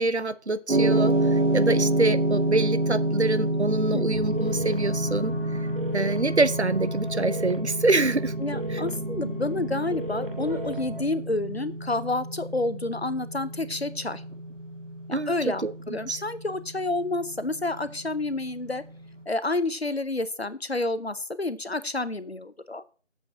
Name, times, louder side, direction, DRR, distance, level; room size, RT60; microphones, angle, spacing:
voice 1, 0.0-5.4 5.9-8.3 8.7-8.8 15.1-16.2, right 2 dB, 65° right, 15 dB, 0.8 m, -26 dB
sound 1, 0.7-18.9, right 1 dB, 85° right, 2.4 m, -28 dB
voice 2, 3.9-4.2 8.4-14.2 15.3-18.8 19.3-22.8, left 2 dB, 60° left, 14 dB, 0.8 m, -29 dB
sound 2, 4.1-11.0, right 1 dB, 50° right, 2.2 m, -36 dB
7.6 x 5.7 x 6.2 m, 0.38 s
figure-of-eight pair, 180°, 36 cm